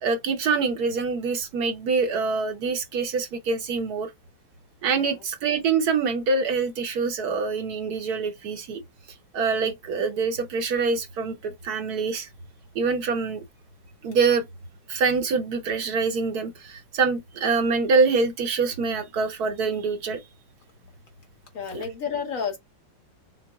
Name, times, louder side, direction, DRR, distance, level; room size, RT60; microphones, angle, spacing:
voice 1, 0.0-4.1 4.8-8.8 9.3-12.3 12.7-13.4 14.0-14.4 14.9-20.2 21.7-21.8, right 4 dB, 65° right, 1.2 m, -25 dB
voice 2, 21.5-22.6, left 6 dB, 55° left, 1.1 m, -31 dB
5.9 x 2.0 x 3.5 m
omnidirectional pair, 1.9 m